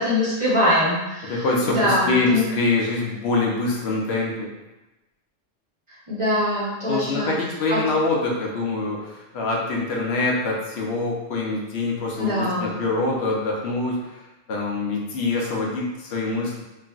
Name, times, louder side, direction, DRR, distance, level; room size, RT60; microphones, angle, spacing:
voice 1, 0.0-2.4 6.1-7.4 7.7-7.8 12.2-12.7, left 1 dB, 30° right, -9 dB, 0.8 m, -23 dB
voice 2, 1.3-4.5 6.9-14.0 14.5-16.6, left 3 dB, 75° left, -2 dB, 0.9 m, -24 dB
3.1 x 2.5 x 2.3 m, 1.0 s
omnidirectional pair, 1.1 m